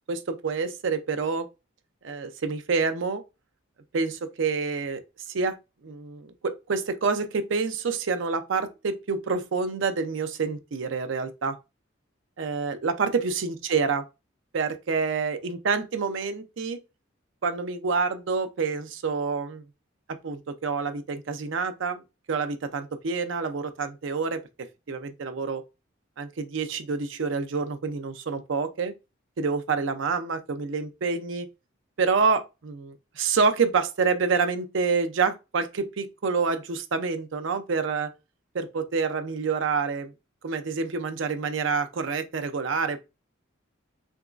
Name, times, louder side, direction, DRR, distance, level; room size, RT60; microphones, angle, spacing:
voice 1, 0.1-1.5 2.0-3.2 3.9-5.0 5.3-5.6 5.8-11.6 12.4-14.0 14.5-16.8 17.4-19.6 20.2-22.0 22.3-25.6 26.2-28.9 29.4-31.5 32.0-38.1 38.5-40.1 40.4-43.0, right 5 dB, 70° right, 0.5 m, -27 dB
3.5 x 2.9 x 2.4 m
head